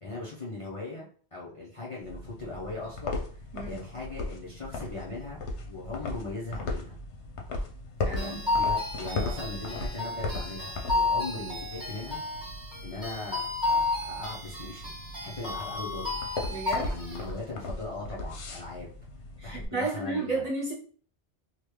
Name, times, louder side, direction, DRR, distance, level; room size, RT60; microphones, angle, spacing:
voice 1, 0.0-5.4 5.7-7.0 8.1-12.2 12.8-16.2 16.8-18.9 19.4-20.5, left 2 dB, 35° left, -6 dB, 0.7 m, -39 dB
sound 1, 2.0-19.7, left 2 dB, 85° left, 1.0 m, -37 dB
voice 2, 8.0-8.4 16.5-16.9 19.4-20.7, right 2 dB, 40° right, -3 dB, 0.9 m, -32 dB
sound 2, 8.2-17.2, left 3 dB, 5° right, 1.4 m, -32 dB
3.0 x 2.3 x 3.2 m, 0.44 s
omnidirectional pair, 1.1 m